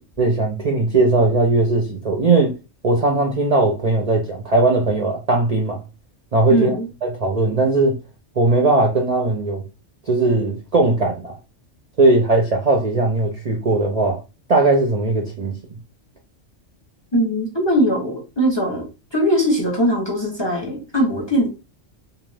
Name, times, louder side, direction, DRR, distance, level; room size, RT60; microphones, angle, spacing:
voice 1, 0.2-2.5 2.8-5.8 6.3-6.7 7.2-8.0 8.4-9.6 10.1-11.3 12.0-14.2 14.5-15.6, right 2 dB, 50° right, 0.5 m, -18 dB
voice 2, 6.5-6.9 17.1-18.8 19.1-21.5, equal, 30° left, 0.6 m, -20 dB
2.4 x 2.4 x 3.2 m
omnidirectional pair, 1.3 m